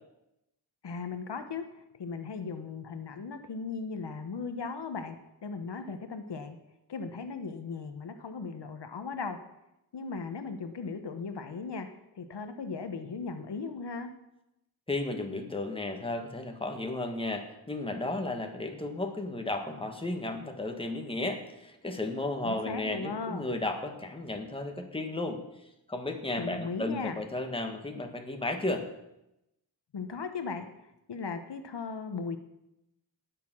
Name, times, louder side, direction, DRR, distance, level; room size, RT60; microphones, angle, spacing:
voice 1, 0.8-1.6 2.0-5.2 5.4-6.6 6.9-9.4 9.9-11.9 12.1-14.1 22.4-23.5 26.4-27.2 29.9-32.4, left 4 dB, 70° left, 8 dB, 1.1 m, -37 dB
voice 2, 14.9-25.4 25.9-28.8, left 2 dB, 10° left, 4 dB, 1.5 m, -34 dB
18.5 x 6.8 x 6.1 m, 0.88 s
wide cardioid pair, 130°, 43 cm